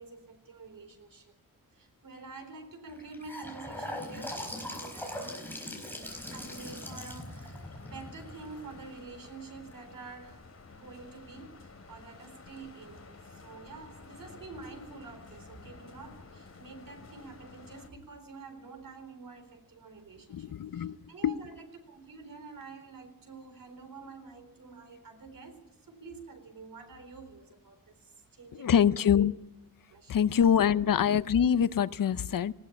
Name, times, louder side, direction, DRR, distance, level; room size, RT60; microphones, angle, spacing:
voice 1, 0.0-1.3 1.7-5.4 6.3-10.4 10.7-29.3 29.9-30.2, right 4 dB, 75° right, 6 dB, 4.1 m, -48 dB
Gurgling / Sink (filling or washing) / Bathtub (filling or washing), 2.9-8.9, left 1 dB, 5° left, 4.4 m, -41 dB
sound 1, 6.0-17.9, left 4 dB, 45° left, 2.8 m, -51 dB
voice 2, 20.3-21.0 21.2-21.4 28.5-29.3 30.1-32.5, left 8 dB, 70° left, 15 dB, 0.7 m, -25 dB
19.0 x 18.0 x 8.7 m, 0.93 s
wide cardioid pair, 165°, 34 cm